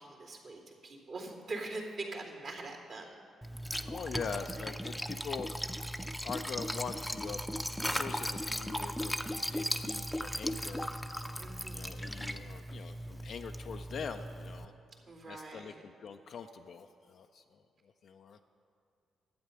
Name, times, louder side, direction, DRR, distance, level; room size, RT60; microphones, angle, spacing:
voice 1, 0.0-3.2 11.4-12.1 15.0-15.8, right 2 dB, 65° right, -8 dB, 2.8 m, -43 dB
Liquid, 3.4-14.6, equal, 5° left, 0.6 m, -37 dB
voice 2, 3.8-5.7 6.2-7.4 7.8-10.9 11.7-14.7 15.3-17.6 18.0-18.4, left 6 dB, 55° left, 6 dB, 0.3 m, -43 dB
12.0 x 8.7 x 5.8 m, 2.6 s
figure-of-eight pair, 40°, 0 cm